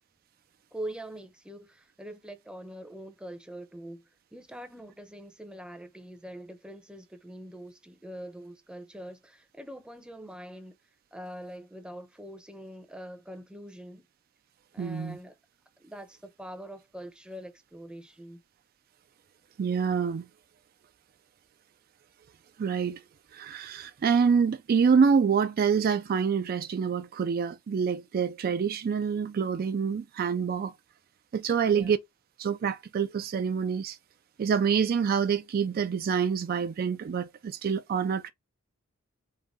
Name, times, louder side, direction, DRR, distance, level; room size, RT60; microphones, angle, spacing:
voice 1, 0.7-10.8 11.1-14.1 14.7-15.4 15.8-18.4 31.6-31.9, right 1 dB, 5° right, 0.6 m, -43 dB
voice 2, 14.8-15.2 19.6-20.2 22.6-23.0 23.3-30.7 31.3-32.0 32.4-34.0 34.4-38.3, right 6 dB, 45° right, 0.3 m, -26 dB
3.9 x 3.8 x 3.5 m
head